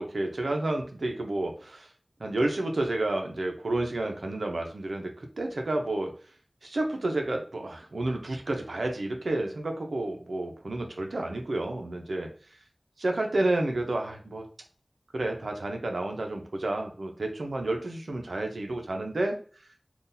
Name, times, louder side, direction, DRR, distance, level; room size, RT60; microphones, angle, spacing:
voice 1, 0.0-1.9 2.2-6.2 6.6-12.3 13.0-14.5 15.1-19.4, right 2 dB, 90° right, 3 dB, 0.7 m, -30 dB
3.7 x 2.4 x 2.7 m, 0.41 s
wide cardioid pair, 40°, 0 cm